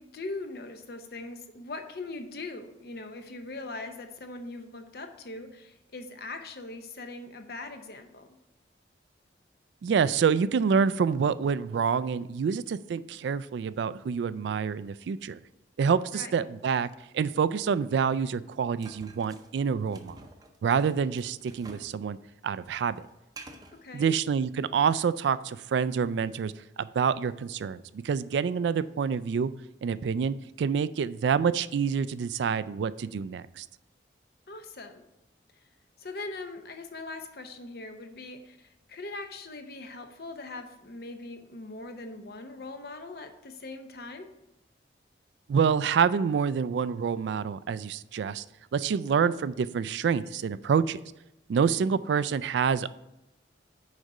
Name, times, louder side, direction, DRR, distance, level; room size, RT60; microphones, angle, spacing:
voice 1, 0.0-8.3 16.1-16.3 23.7-24.1 34.5-35.1 36.0-44.3, left 2 dB, 55° left, 7 dB, 0.7 m, -41 dB
voice 2, 9.8-15.4 15.8-16.9 17.1-20.2 20.6-22.2 22.4-23.1 23.9-29.5 29.8-33.7 45.5-48.4 48.7-51.0 51.5-52.9, right 6 dB, 75° right, 16 dB, 0.3 m, -27 dB
sound 1, 18.8-22.0 22.2-23.8, right 2 dB, 20° right, 0.6 m, -50 dB
6.4 x 4.9 x 5.4 m, 0.91 s
head